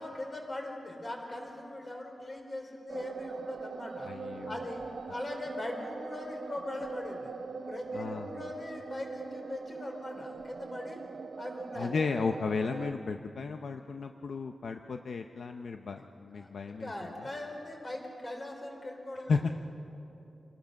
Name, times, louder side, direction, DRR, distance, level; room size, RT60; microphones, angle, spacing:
voice 1, 0.0-4.1 4.5-4.8 5.1-7.3 7.7-11.0 11.4-12.0 16.3-19.4, left 1 dB, 30° left, 1 dB, 3.5 m, -40 dB
sound 1, 2.9-12.9, right 4 dB, 55° right, 0.6 m, -42 dB
voice 2, 4.0-4.5 7.9-8.4 11.7-17.3 19.3-19.6, left 4 dB, 70° left, 6 dB, 0.6 m, -34 dB
26.5 x 19.0 x 6.4 m, 2.8 s
wide cardioid pair, 165°, 0 cm